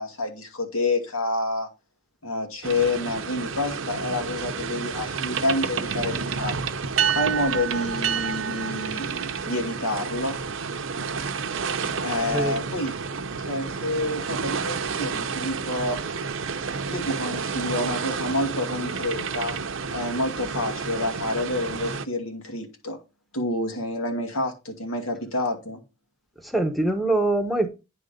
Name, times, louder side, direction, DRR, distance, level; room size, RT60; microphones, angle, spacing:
voice 1, 0.0-1.7 2.2-6.5 7.1-10.4 11.5-11.6 12.0-13.0 13.4-16.0 16.9-19.6 19.9-23.0 23.3-25.8, left 2 dB, 85° left, 2.2 m, -28 dB
sound 1, 2.6-22.1, right 6 dB, 70° right, 0.7 m, -30 dB
voice 2, 26.4-27.7, right 2 dB, ahead, 0.9 m, -23 dB
9.8 x 3.9 x 5.2 m
head